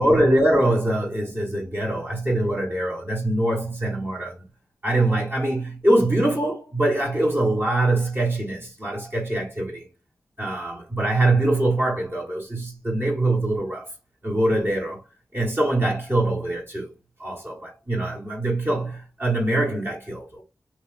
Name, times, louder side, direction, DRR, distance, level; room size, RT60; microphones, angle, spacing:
voice 1, 0.0-4.3 4.8-9.8 10.4-13.9 14.2-15.0 15.3-16.9 17.2-20.4, right 1 dB, 30° right, 1.5 m, -23 dB
3.1 x 2.9 x 2.4 m
cardioid pair, 45°, 7 cm